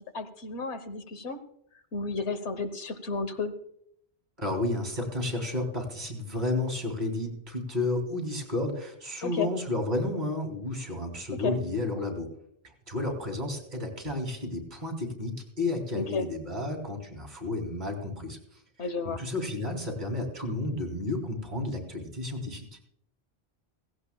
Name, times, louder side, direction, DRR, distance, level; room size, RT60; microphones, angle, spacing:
voice 1, 0.1-1.4 1.9-3.5 9.2-9.5 11.4-11.6 15.9-16.2 18.8-19.2, left 4 dB, 85° left, 10 dB, 1.4 m, -32 dB
voice 2, 4.4-12.3 12.9-18.4 19.0-22.7, left 2 dB, 45° right, 2 dB, 3.1 m, -32 dB
16.5 x 16.5 x 2.3 m, 0.71 s
omnidirectional pair, 1.1 m